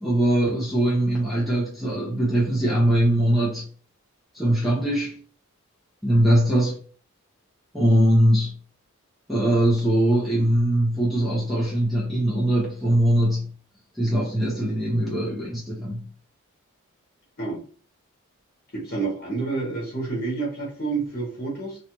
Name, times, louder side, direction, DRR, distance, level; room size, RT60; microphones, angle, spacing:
voice 1, 0.0-3.6 4.3-5.2 6.0-6.8 7.7-8.5 9.3-13.5 13.9-16.0, right 1 dB, ahead, 0.9 m, -21 dB
voice 2, 18.7-21.8, right 3 dB, 45° left, 1.7 m, -29 dB
3.2 x 2.9 x 3.0 m
head